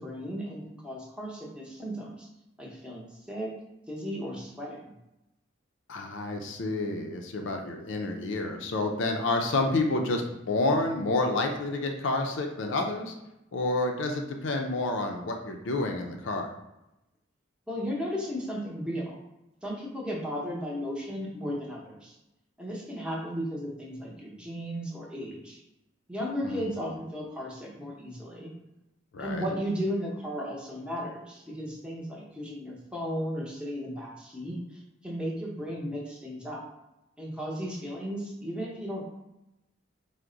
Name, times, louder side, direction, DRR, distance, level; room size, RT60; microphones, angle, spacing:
voice 1, 0.0-2.3 2.6-3.5 3.9-4.9 17.7-19.2 19.6-22.2 22.6-25.6 26.1-28.5 29.2-36.6 37.2-39.0, equal, 5° right, -3 dB, 0.7 m, -35 dB
voice 2, 5.9-13.1 13.5-16.5 26.4-26.7 29.1-29.5, left 2 dB, 70° left, 3 dB, 0.5 m, -29 dB
4.6 x 2.1 x 3.8 m, 0.92 s
head